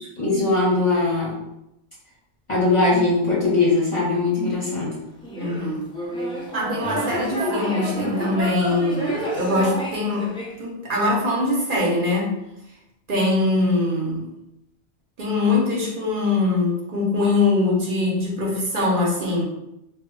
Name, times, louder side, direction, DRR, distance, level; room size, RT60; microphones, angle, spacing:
voice 1, 0.2-1.3 2.5-4.9, left 3 dB, 35° left, -6 dB, 0.6 m, -20 dB
sound 1, 5.2-10.5, equal, 10° left, 0.3 m, -29 dB
voice 2, 5.4-5.9 6.5-10.2 10.6-12.3 13.1-14.3 15.2-19.4, left 2 dB, 60° right, -3 dB, 0.8 m, -22 dB
2.1 x 2.0 x 3.7 m, 0.85 s
omnidirectional pair, 1.1 m